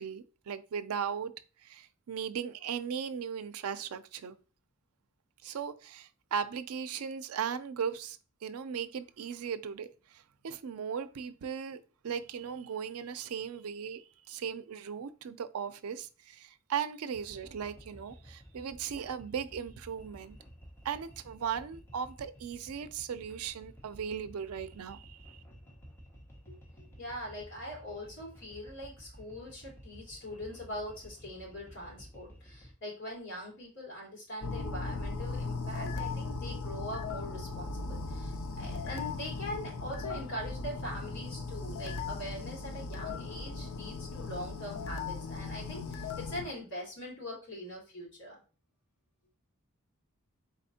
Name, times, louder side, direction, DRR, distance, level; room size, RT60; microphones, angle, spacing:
voice 1, 0.0-1.4 1.6-4.4 5.4-20.4 20.8-25.4, right 7 dB, 85° right, 0.4 m, -37 dB
sound 1, 17.1-32.7, equal, 10° left, 1.0 m, -53 dB
voice 2, 26.5-48.4, equal, 60° left, 2.5 m, -42 dB
sound 2, 34.4-46.5, left 3 dB, 75° left, 0.5 m, -38 dB
4.2 x 4.1 x 2.7 m
head